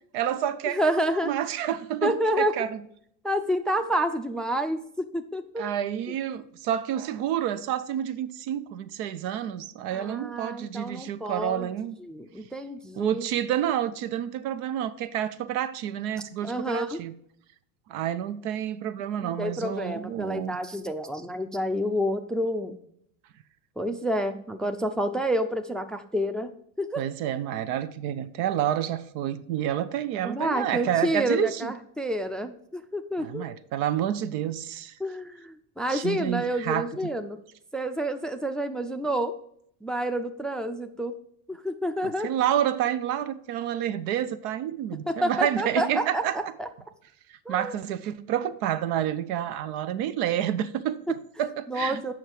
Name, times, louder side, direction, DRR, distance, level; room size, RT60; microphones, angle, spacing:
voice 1, 0.1-2.8 5.6-11.9 13.0-17.1 17.9-20.6 27.0-31.7 33.2-35.0 35.9-36.9 42.0-46.5 47.3-52.0, right 10 dB, 65° right, 0.7 m, -29 dB
voice 2, 0.7-1.3 2.0-2.5 3.2-5.7 9.9-11.7 12.0-13.2 16.4-17.0 19.2-22.7 23.8-27.0 30.2-33.4 35.0-37.4 37.7-39.4 39.8-41.2 41.5-42.3 45.1-46.7 47.5-47.7 51.1-51.2 51.7-52.1, equal, ahead, 0.5 m, -29 dB
7.4 x 5.8 x 4.7 m
hypercardioid pair, 80°, 44 cm